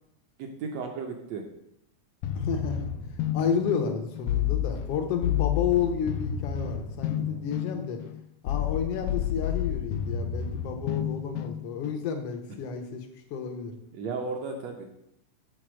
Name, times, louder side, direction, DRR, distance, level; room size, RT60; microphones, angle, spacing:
voice 1, 0.4-1.5 7.2-7.4 13.9-14.9, right 4 dB, 70° right, 3 dB, 1.7 m, -35 dB
sound 1, 2.2-12.0, left 10 dB, 90° left, 2.1 m, -30 dB
voice 2, 2.3-2.9 3.3-8.0 8.4-13.7, left 7 dB, 75° left, 5 dB, 1.4 m, -31 dB
7.8 x 4.1 x 6.2 m, 0.78 s
omnidirectional pair, 3.6 m